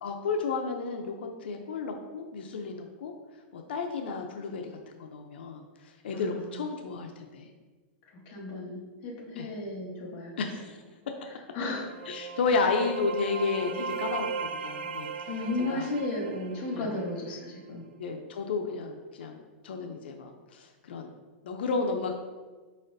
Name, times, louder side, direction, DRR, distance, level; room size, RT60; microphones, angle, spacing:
voice 1, 0.0-3.1 3.5-5.6 6.0-7.5 9.4-9.5 10.4-10.8 12.1-15.3 15.7-15.9 16.7-16.9 18.0-19.4 19.6-21.1 21.4-22.1, left 4 dB, 80° left, 3 dB, 0.5 m, -32 dB
voice 2, 6.1-6.4 8.3-10.3 11.5-11.9 15.3-17.8, left 2 dB, 30° left, -3 dB, 1.0 m, -34 dB
sound 1, 11.6-17.3, right 5 dB, 90° right, 0.4 m, -37 dB
4.7 x 4.1 x 2.6 m, 1.4 s
supercardioid pair, 175°, 6 cm